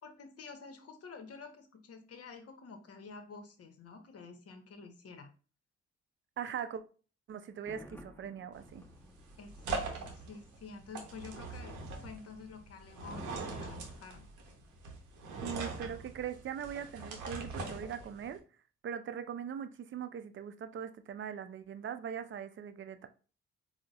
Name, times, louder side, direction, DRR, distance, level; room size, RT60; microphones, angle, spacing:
voice 1, 0.0-5.3 9.4-14.3, left 4 dB, 55° left, 0.8 m, -50 dB
voice 2, 6.4-6.8 7.3-8.8 15.4-18.4 18.8-23.1, right 8 dB, 45° right, 0.5 m, -41 dB
Thunder, 7.5-11.4 11.7-11.8, equal, 5° left, 0.9 m, -57 dB
sound 1, 8.5-18.4, right 3 dB, 85° right, 0.7 m, -42 dB
3.8 x 2.1 x 2.4 m
hypercardioid pair, 45°, 29 cm